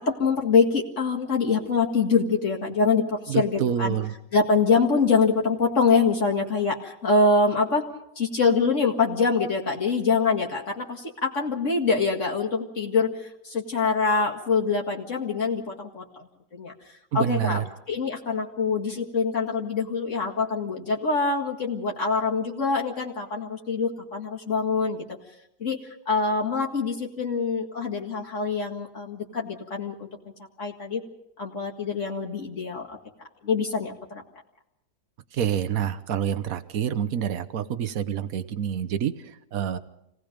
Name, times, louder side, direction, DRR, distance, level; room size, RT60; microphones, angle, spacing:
voice 1, 0.0-3.9 4.3-7.9 8.2-16.7 17.1-17.6 17.9-25.2 25.6-30.1 30.6-31.0 31.4-33.0 33.4-34.2, left 4 dB, 45° left, -1 dB, 2.1 m, -25 dB
voice 2, 3.3-4.1 17.1-17.6 35.3-39.8, right 9 dB, 60° right, 12 dB, 1.3 m, -27 dB
27.5 x 18.5 x 5.2 m, 0.82 s
omnidirectional pair, 1.8 m